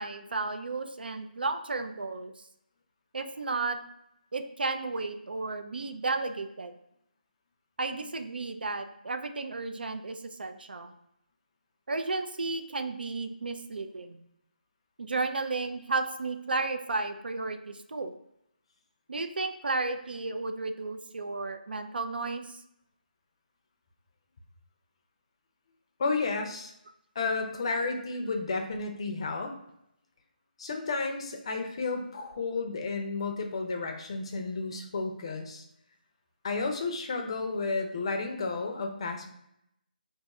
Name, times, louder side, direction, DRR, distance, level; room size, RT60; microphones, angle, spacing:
voice 1, 0.0-2.3 3.1-3.8 4.3-6.7 7.8-10.9 11.9-14.2 15.0-18.1 19.1-22.6, right 3 dB, 90° right, 7 dB, 0.4 m, -33 dB
voice 2, 26.0-26.7 27.2-29.5 30.6-35.6 36.4-39.3, left 3 dB, 35° left, 3 dB, 0.4 m, -32 dB
2.5 x 2.4 x 4.1 m, 0.78 s
hypercardioid pair, 170°, 5 cm